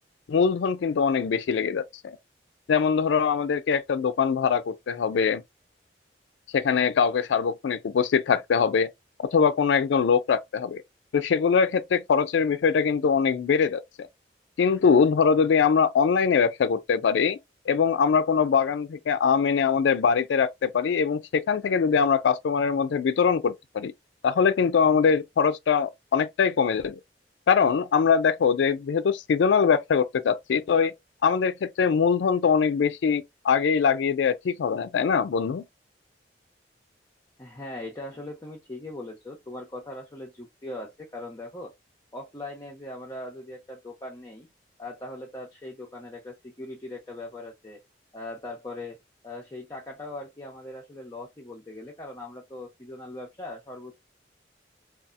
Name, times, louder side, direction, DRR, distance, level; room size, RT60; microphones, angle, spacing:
voice 1, 0.3-2.2 2.7-5.4 6.5-8.9 9.3-10.8 11.1-13.8 14.6-17.4 17.7-23.9 24.2-27.0 27.5-30.9 31.2-35.6, left 6 dB, 85° left, 0.4 m, -22 dB
voice 2, 37.4-41.7 42.1-44.5 44.8-47.8 48.1-49.0 49.2-53.9, left 1 dB, 20° left, 0.5 m, -40 dB
2.6 x 2.3 x 2.4 m
head